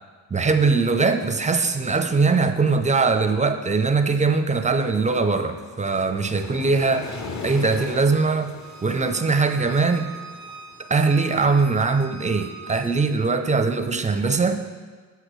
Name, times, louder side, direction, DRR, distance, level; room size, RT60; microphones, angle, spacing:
voice 1, 0.3-7.1 7.4-8.5 8.8-10.1 10.9-14.6, right 4 dB, 15° right, 8 dB, 0.5 m, -21 dB
Waves surf, 4.8-11.9, left 3 dB, 40° left, 0.9 m, -40 dB
Bowed string instrument, 8.6-13.0, right 6 dB, 85° left, 2.0 m, -42 dB
8.0 x 5.7 x 3.1 m, 1.4 s
supercardioid pair, 50°, 46 cm